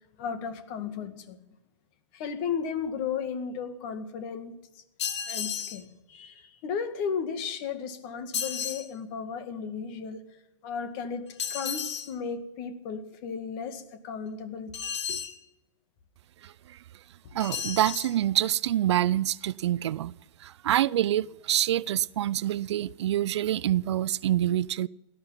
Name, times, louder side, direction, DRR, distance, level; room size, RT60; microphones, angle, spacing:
voice 1, 0.2-1.4 2.1-4.6 5.3-10.2 10.6-14.8 15.1-15.2, left 6 dB, 45° left, 2.1 m, -34 dB
sound 1, 5.0-5.8 8.3-8.9 11.4-12.1 14.7-15.4 17.4-18.1, left 8 dB, 60° left, 1.9 m, -33 dB
voice 2, 16.4-16.8 17.3-20.1 20.4-24.9, right 12 dB, 60° right, 0.5 m, -26 dB
18.0 x 12.5 x 5.8 m
hypercardioid pair, 110°, 16 cm